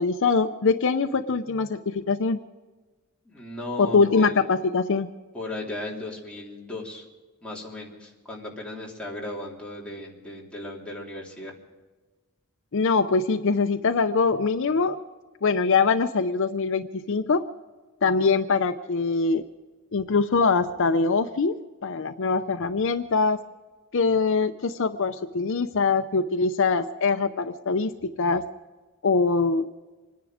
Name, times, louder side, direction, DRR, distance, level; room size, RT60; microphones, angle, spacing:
voice 1, 0.0-2.4 3.8-5.1 12.7-15.0 15.4-17.5 18.0-19.4 19.9-23.4 23.9-28.4 29.0-29.7, left 4 dB, 60° left, 9 dB, 0.6 m, -23 dB
voice 2, 3.2-4.4 5.3-7.0 7.4-11.5, left 2 dB, 5° left, -4 dB, 3.3 m, -36 dB
26.0 x 10.5 x 5.0 m, 1.2 s
head